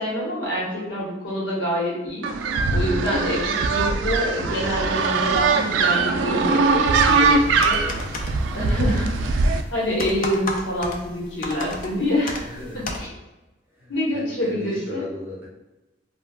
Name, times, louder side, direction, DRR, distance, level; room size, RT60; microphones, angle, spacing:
voice 1, 0.0-2.3 2.7-7.8 8.4-12.4 12.7-13.1 13.9-15.1, left 1 dB, 85° left, -5 dB, 1.0 m, -26 dB
sound 1, 2.2-9.6, right 4 dB, 75° right, 0.3 m, -21 dB
sound 2, 7.1-13.1, left 2 dB, 50° left, 0.4 m, -35 dB
voice 2, 12.4-12.9 13.7-15.5, left 1 dB, 10° right, -7 dB, 1.0 m, -36 dB
2.3 x 2.2 x 3.5 m, 1.0 s
head